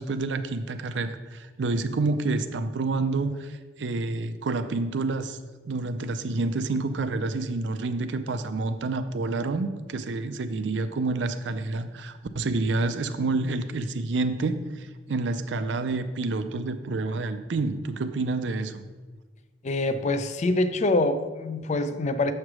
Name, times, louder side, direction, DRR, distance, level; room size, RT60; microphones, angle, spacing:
voice 1, 0.0-5.4 5.7-18.9, right 3 dB, 80° right, 10 dB, 0.5 m, -28 dB
voice 2, 19.6-22.3, left 2 dB, 40° left, 10 dB, 0.4 m, -25 dB
7.2 x 3.2 x 6.0 m, 1.3 s
head